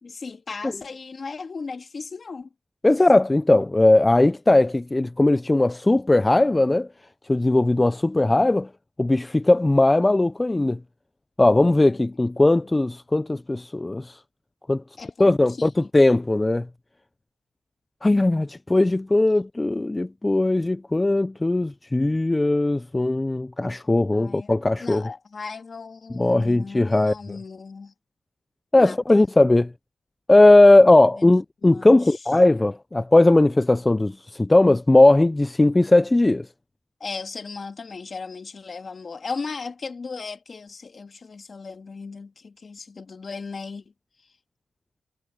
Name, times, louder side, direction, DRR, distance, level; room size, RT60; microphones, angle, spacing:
voice 1, 0.0-2.5 3.0-3.1 11.7-12.3 12.6-12.7 15.0-15.7 19.4-19.5 24.1-24.5 24.8-27.9 28.8-29.2 31.2-31.3 31.6-32.2 37.0-43.8, left 4 dB, 45° left, 2.4 m, -37 dB
voice 2, 2.8-6.9 7.3-8.7 9.0-10.8 11.4-14.2 14.7-14.8 15.2-16.7 18.0-25.1 26.2-27.1 28.7-29.7 30.3-36.5, left 2 dB, 20° left, 0.5 m, -18 dB
cardioid pair, 70°, 0 cm